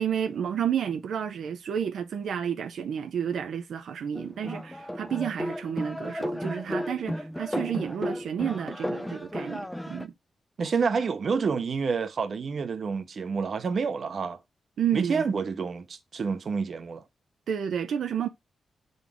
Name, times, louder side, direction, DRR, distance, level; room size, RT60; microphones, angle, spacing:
voice 1, 0.0-10.1 14.8-15.3 17.5-18.3, right 8 dB, 75° right, 0.6 m, -31 dB
sound 1, 4.1-10.1, equal, 5° left, 0.4 m, -34 dB
voice 2, 10.6-14.4 14.9-17.0, right 5 dB, 45° right, 0.8 m, -28 dB
7.3 x 4.0 x 3.5 m
wide cardioid pair, 170°, 0 cm